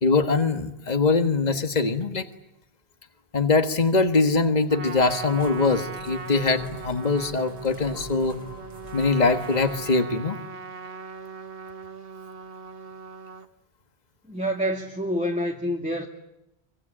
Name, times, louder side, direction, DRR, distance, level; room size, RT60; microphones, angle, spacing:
voice 1, 0.0-2.3 3.3-8.4 8.9-10.4, left 3 dB, 40° left, 8 dB, 1.7 m, -22 dB
Trumpet, 4.7-13.5, right 4 dB, 60° right, 1.5 m, -39 dB
sound 1, 4.9-9.8, right 1 dB, 35° right, 4.9 m, -46 dB
voice 2, 14.3-16.1, equal, 5° right, 1 dB, 2.3 m, -27 dB
25.0 x 25.0 x 8.8 m, 0.86 s
omnidirectional pair, 1.1 m